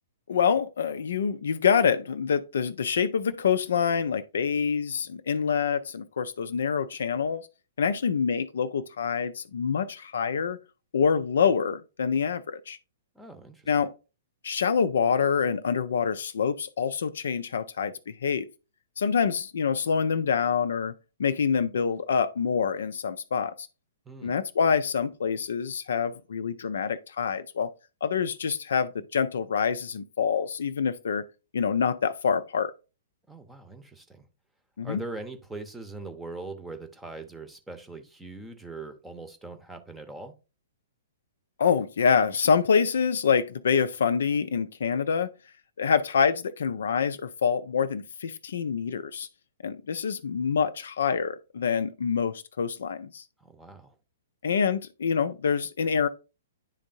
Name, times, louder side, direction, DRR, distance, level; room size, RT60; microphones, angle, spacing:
voice 1, 0.3-7.5 7.8-10.6 10.9-12.8 13.7-13.9 14.4-18.5 19.0-20.9 21.2-23.7 24.2-27.7 28.0-31.3 31.5-32.7 34.8-35.0 41.6-45.3 45.8-49.3 49.6-53.2 54.4-56.1, left 6 dB, 60° left, 0.4 m, -26 dB
voice 2, 13.1-13.7 24.1-24.4 33.3-34.3 34.8-40.3 53.4-53.9, right 3 dB, 5° right, 0.8 m, -41 dB
10.5 x 3.5 x 2.5 m
figure-of-eight pair, 115°, 0 cm